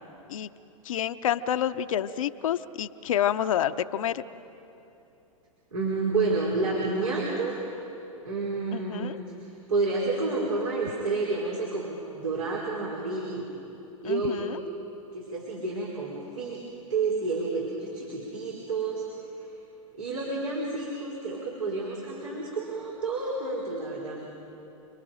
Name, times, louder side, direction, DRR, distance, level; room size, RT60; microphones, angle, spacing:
voice 1, 0.8-4.2 8.7-9.2 14.0-14.6, left 10 dB, 70° left, 10 dB, 0.7 m, -28 dB
voice 2, 5.7-7.5 8.2-13.5 14.0-14.6 15.1-19.0 19.4-19.5 20.0-24.3, right 3 dB, 80° right, -4 dB, 4.4 m, -30 dB
29.5 x 22.0 x 5.0 m, 2.9 s
hypercardioid pair, 105°, 18 cm